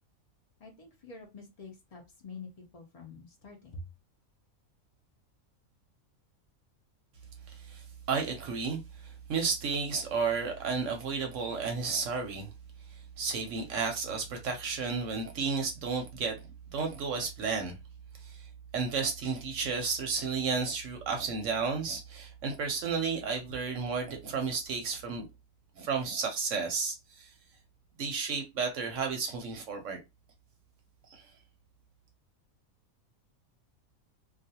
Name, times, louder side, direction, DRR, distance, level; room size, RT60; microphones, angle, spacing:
voice 1, 0.6-3.9, left 3 dB, 75° left, 0.3 m, -47 dB
voice 2, 7.5-12.5 13.2-17.8 18.2-18.5 18.7-25.2 25.8-27.3 28.0-30.0 31.1-31.2, right 5 dB, 65° right, 0.8 m, -32 dB
2.4 x 2.3 x 2.7 m
omnidirectional pair, 1.5 m